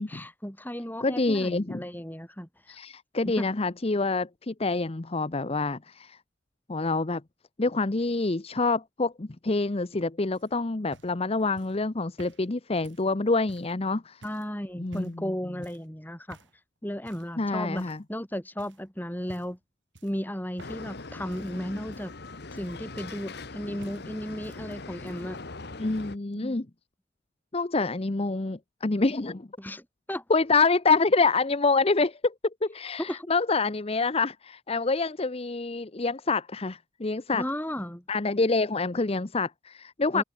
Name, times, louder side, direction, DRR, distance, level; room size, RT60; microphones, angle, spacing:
voice 1, 0.0-2.8 3.3-3.5 14.2-16.4 16.8-19.6 20.0-22.1 22.5-25.4 26.3-26.6 29.6-30.2 33.0-33.3 37.3-38.0 40.1-40.2, equal, 10° left, 5.3 m, -35 dB
voice 2, 1.0-1.8 2.7-6.2 6.7-7.2 7.6-14.2 14.8-15.2 17.4-18.0 25.8-26.7 27.5-29.5 30.3-32.3 32.6-37.4 38.1-40.2, left 3 dB, 35° left, 0.8 m, -26 dB
sound 1, 10.3-13.8 14.2-14.5 14.9-15.3 15.6-15.9 16.3-16.6 17.1-17.4 17.8-18.3 18.6-18.8 19.2-19.6 19.9-21.0 21.3-23.6 23.8-24.6 24.9-25.4 26.3-26.4, right 1 dB, 85° right, 4.7 m, -53 dB
sound 2, 20.6-26.2, left 3 dB, 60° left, 1.4 m, -41 dB
head